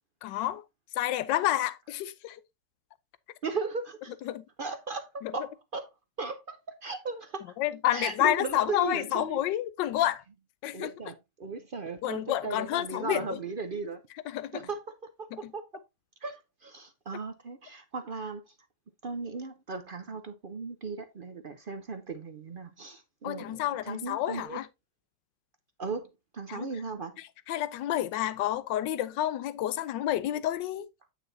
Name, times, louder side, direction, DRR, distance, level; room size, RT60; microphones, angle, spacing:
voice 1, 0.2-0.6 0.9-2.4 4.3-4.4 5.2-5.3 7.6-10.2 10.6-10.9 12.0-13.4 14.3-14.6 15.3-15.5 23.2-24.7 26.5-26.7 27.5-30.9, left 13 dB, 90° left, 1.3 m, -29 dB
voice 2, 3.4-4.2 4.6-5.9 6.2-7.5 7.9-9.4 10.7-14.0 14.5-14.8 15.2-15.8 16.2-18.4 19.0-24.6 25.8-26.1 26.3-27.2, right 4 dB, 60° right, 0.5 m, -37 dB
9.2 x 6.0 x 2.7 m
omnidirectional pair, 1.9 m